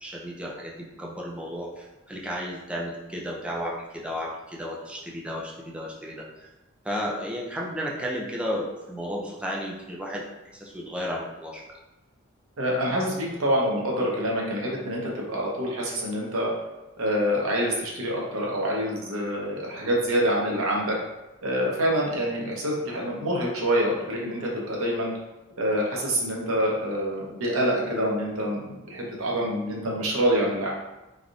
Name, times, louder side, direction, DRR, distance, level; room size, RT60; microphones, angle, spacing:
voice 1, 0.0-6.3 6.8-10.2 10.5-11.6, equal, 5° right, -2 dB, 0.4 m, -33 dB
voice 2, 12.6-16.5 17.0-21.0 21.4-25.1 25.6-30.7, equal, 85° right, -3 dB, 0.8 m, -26 dB
3.3 x 2.6 x 2.4 m, 1.0 s
head